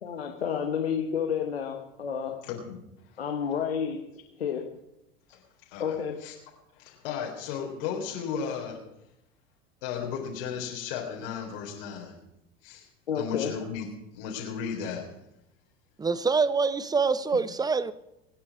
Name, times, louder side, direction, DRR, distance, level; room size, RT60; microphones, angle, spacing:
voice 1, 0.0-2.4 3.2-4.0 4.4-4.6 5.8-6.2 8.3-8.4 13.1-13.5, left 7 dB, 75° left, 3 dB, 1.7 m, -30 dB
voice 2, 2.4-2.8 3.1-3.2 5.3-5.4 5.7-6.3 6.7-8.8 9.8-12.2 12.6-12.9 13.2-13.9 14.1-15.1, left 7 dB, 60° left, -1 dB, 3.7 m, -35 dB
voice 3, 16.0-17.9, right 4 dB, 10° right, 17 dB, 0.8 m, -25 dB
25.0 x 9.9 x 4.7 m, 0.86 s
figure-of-eight pair, 75°, 31 cm